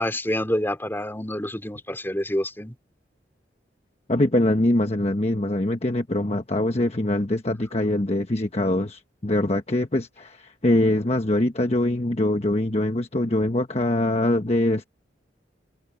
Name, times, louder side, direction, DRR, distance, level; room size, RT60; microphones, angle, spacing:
voice 1, 0.0-2.7, left 1 dB, 10° left, 4.0 m, -27 dB
voice 2, 4.1-14.8, left 1 dB, 35° left, 1.2 m, -23 dB
head